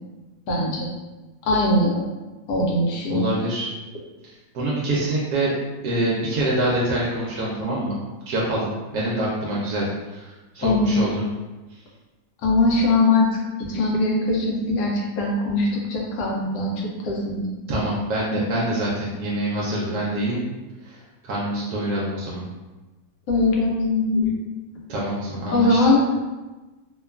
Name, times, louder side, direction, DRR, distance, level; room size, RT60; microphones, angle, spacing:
voice 1, 0.5-0.9 1.4-2.0 2.5-3.3 10.6-11.0 12.4-13.3 13.7-16.7 17.0-17.4 23.3-24.3 25.5-26.0, left 2 dB, 80° left, -2 dB, 1.2 m, -21 dB
voice 2, 3.1-3.7 4.5-5.5 5.8-8.0 8.3-8.7 8.9-11.2 17.7-20.4 20.8-21.0 21.2-22.4 24.9-25.8, right 1 dB, 80° right, -5 dB, 1.1 m, -25 dB
3.0 x 2.2 x 2.3 m, 1.2 s
omnidirectional pair, 1.7 m